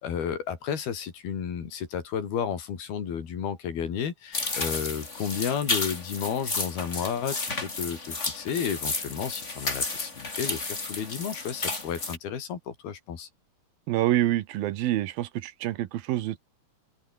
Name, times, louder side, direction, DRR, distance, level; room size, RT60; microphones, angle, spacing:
voice 1, 0.0-13.3, left 7 dB, 90° left, 5.3 m, -32 dB
sound 1, 4.3-12.2, left 3 dB, 20° left, 3.2 m, -32 dB
voice 2, 13.9-16.4, right 14 dB, 75° right, 2.9 m, -27 dB
open air
omnidirectional pair, 4.3 m